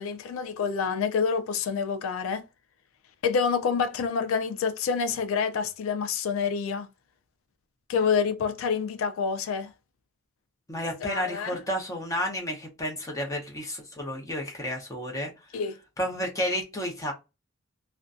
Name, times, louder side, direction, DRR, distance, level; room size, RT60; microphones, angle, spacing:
voice 1, 0.0-2.4 3.2-6.9 7.9-9.7 11.0-11.6 15.5-15.8, left 6 dB, 85° left, 0.4 m, -27 dB
voice 2, 10.7-15.3 16.0-17.1, equal, 15° left, 0.7 m, -31 dB
2.4 x 2.2 x 2.4 m
head